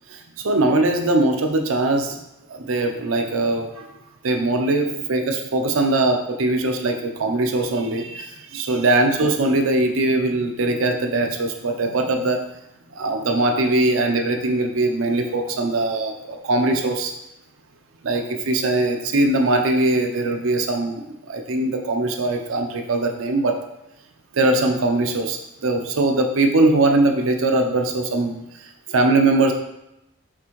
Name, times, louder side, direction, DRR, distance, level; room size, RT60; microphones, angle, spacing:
voice 1, 0.1-2.2 2.5-3.9 4.2-12.4 13.0-17.1 18.0-23.6 24.3-29.5, right 2 dB, 75° right, 4 dB, 0.5 m, -21 dB
5.8 x 2.5 x 3.1 m, 0.87 s
head